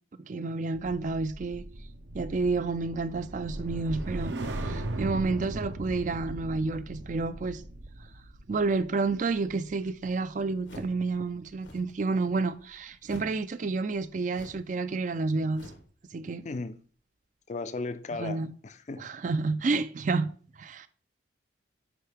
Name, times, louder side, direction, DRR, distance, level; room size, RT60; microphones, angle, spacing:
voice 1, 0.2-1.6 2.1-7.6 8.5-15.7 16.1-16.5 18.2-18.5 19.0-20.3 20.6-20.9, right 3 dB, 40° right, 0.4 m, -30 dB
sound 1, 0.7-11.2 11.5-11.8, right 2 dB, 70° right, 0.8 m, -38 dB
sound 2, 10.6-11.1 11.5-12.0 13.0-13.5 14.3-14.8 15.5-16.0, equal, 80° left, 1.1 m, -47 dB
voice 2, 16.4-16.8 17.5-19.1, left 3 dB, 40° left, 0.4 m, -36 dB
10.0 x 4.5 x 3.4 m
head